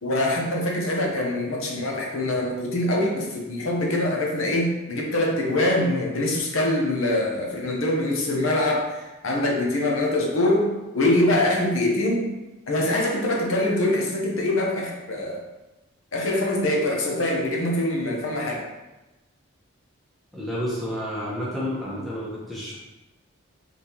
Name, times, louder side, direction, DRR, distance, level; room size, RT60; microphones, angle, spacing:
voice 1, 0.0-10.7 10.9-12.3 12.7-15.4 16.1-18.6, left 1 dB, 70° left, -1 dB, 0.8 m, -24 dB
voice 2, 20.3-22.8, equal, ahead, -8 dB, 1.0 m, -30 dB
4.1 x 3.5 x 2.9 m, 1.0 s
head